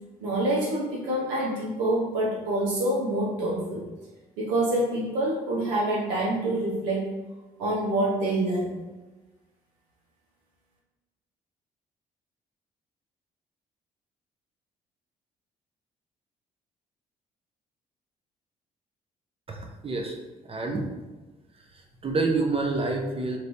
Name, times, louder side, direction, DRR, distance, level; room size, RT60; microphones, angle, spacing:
voice 1, 0.2-3.8 4.4-7.1 7.6-8.7, right 1 dB, 75° right, -5 dB, 1.1 m, -26 dB
voice 2, 19.5-20.2 20.5-20.9 22.0-23.4, right 3 dB, 30° right, 2 dB, 0.7 m, -27 dB
3.1 x 2.9 x 2.7 m, 1.2 s
hypercardioid pair, 50°, 18 cm